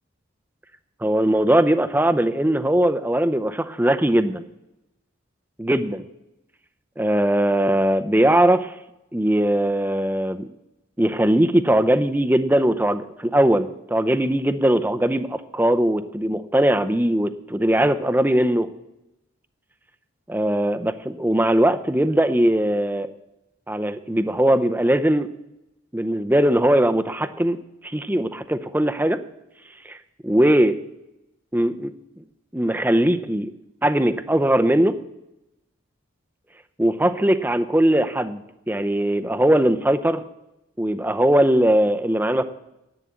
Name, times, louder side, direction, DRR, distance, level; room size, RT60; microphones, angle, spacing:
voice 1, 1.0-4.4 5.6-6.0 7.0-8.8 9.1-10.5 11.0-18.7 20.3-23.1 23.7-25.3 25.9-29.2 29.8-30.0 30.2-30.8 31.5-32.2 32.5-33.5 33.8-35.0 36.8-40.2 40.8-42.4, right 1 dB, 10° right, 11 dB, 0.6 m, -20 dB
11.0 x 9.0 x 8.3 m, 0.90 s
head